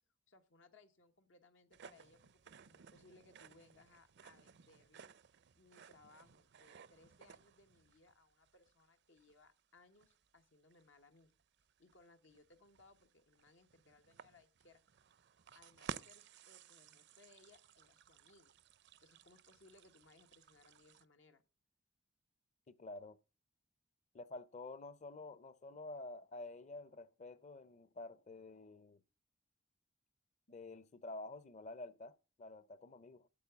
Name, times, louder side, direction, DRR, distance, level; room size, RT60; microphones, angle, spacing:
voice 1, 0.3-5.1 5.5-11.3 11.8-14.8 15.5-18.6 19.0-21.4, left 3 dB, 85° left, 1.3 m, -66 dB
sound 1, 1.7-21.1, right 7 dB, 60° right, 0.5 m, -56 dB
voice 2, 22.7-23.2 24.1-29.0 30.5-33.3, left 2 dB, 40° left, 0.6 m, -50 dB
8.6 x 8.2 x 6.9 m
head